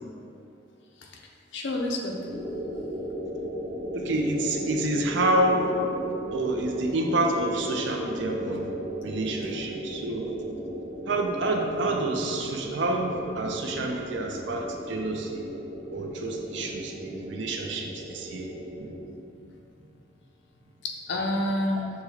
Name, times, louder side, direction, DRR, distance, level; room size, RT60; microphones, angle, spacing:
voice 1, 1.5-2.2 6.7-6.8 20.8-21.9, left 1 dB, 65° left, 1 dB, 0.5 m, -29 dB
sound 1, 2.2-19.0, right 1 dB, 40° right, 0.9 m, -36 dB
voice 2, 3.9-5.7 6.3-8.7 9.0-10.3 11.1-15.5 15.9-18.5 18.8-18.9, right 1 dB, 70° right, 2 dB, 0.5 m, -28 dB
6.1 x 2.2 x 3.4 m, 2.6 s
head